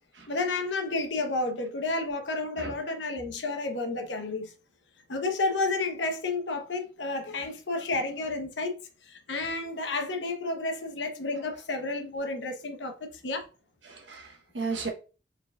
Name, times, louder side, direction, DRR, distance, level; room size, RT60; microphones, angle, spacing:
voice 1, 0.3-4.5 5.1-8.7 9.0-13.5, left 3 dB, 80° left, 0.8 m, -31 dB
voice 2, 13.8-14.9, right 4 dB, 85° right, 1.2 m, -35 dB
4.5 x 3.9 x 2.3 m
head